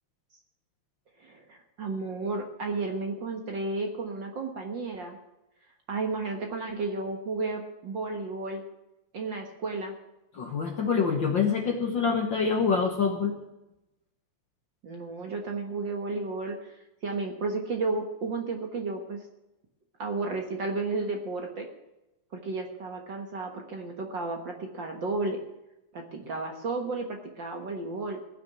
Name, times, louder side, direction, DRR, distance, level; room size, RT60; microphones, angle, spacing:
voice 1, 1.2-5.2 5.9-8.6 9.1-9.9 14.8-19.2 20.0-21.7 22.3-25.4 25.9-28.2, right 3 dB, 50° right, 2 dB, 1.7 m, -33 dB
voice 2, 10.3-13.4, left 5 dB, 50° left, 4 dB, 1.5 m, -26 dB
16.5 x 6.2 x 9.6 m, 0.93 s
omnidirectional pair, 3.3 m